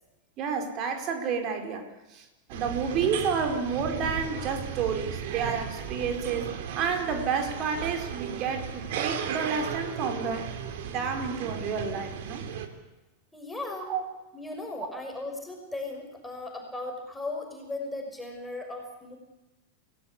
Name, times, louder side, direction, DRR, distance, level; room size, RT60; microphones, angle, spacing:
voice 1, 0.4-10.5 10.9-12.4 13.9-14.0 14.9-15.0, right 6 dB, 35° right, 6 dB, 4.8 m, -30 dB
sound 1, 2.5-12.7, right 8 dB, 50° right, 3.1 m, -35 dB
voice 2, 13.3-13.9 14.3-19.2, left 2 dB, 5° left, 2 dB, 6.1 m, -37 dB
29.0 x 18.5 x 8.5 m, 1.0 s
figure-of-eight pair, 90°, 0 cm